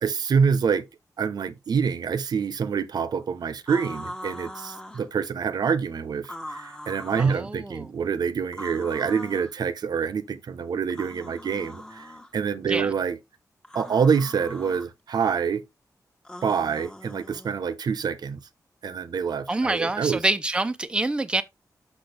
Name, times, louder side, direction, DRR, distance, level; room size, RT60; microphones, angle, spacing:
voice 1, 0.0-0.8 1.2-13.2 13.7-15.6 16.4-18.4 18.8-20.2, right 6 dB, 85° right, 0.8 m, -26 dB
sound 1, 3.7-5.1 6.2-7.4 8.5-9.5 10.9-12.3 13.6-14.9 16.2-17.6, left 1 dB, 10° left, 1.0 m, -40 dB
voice 2, 7.2-7.9 12.7-12.9 19.5-21.4, right 2 dB, 15° right, 0.5 m, -26 dB
6.2 x 6.2 x 3.3 m
wide cardioid pair, 150°, 7 cm